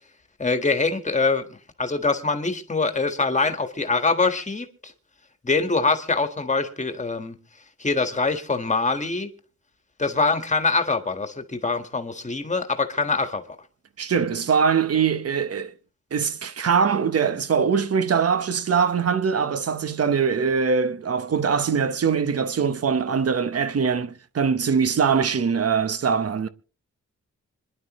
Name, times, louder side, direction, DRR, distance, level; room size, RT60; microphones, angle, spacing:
voice 1, 0.4-4.9 5.4-7.4 7.8-9.3 10.0-13.4, left 3 dB, 25° left, 1.5 m, -24 dB
voice 2, 14.0-15.7 16.1-26.5, right 6 dB, 50° right, 1.0 m, -22 dB
26.0 x 11.0 x 3.1 m
wide cardioid pair, 160°, 30 cm